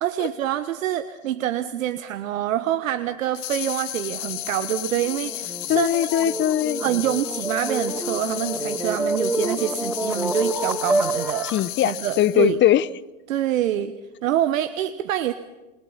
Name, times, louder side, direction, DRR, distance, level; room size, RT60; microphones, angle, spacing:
voice 1, 0.0-5.9 6.8-11.5 11.8-12.6 13.3-13.9 14.2-15.3, right 12 dB, 75° right, 12 dB, 1.2 m, -26 dB
sound 1, 3.3-12.5, left 20 dB, 60° left, 1.5 m, -33 dB
sound 2, 4.4-11.7, right 2 dB, 5° right, 1.6 m, -28 dB
voice 2, 5.7-6.8 11.4-12.9, left 12 dB, 30° left, 20 dB, 0.8 m, -20 dB
28.0 x 20.5 x 5.7 m, 1.1 s
hypercardioid pair, 105°, 40 cm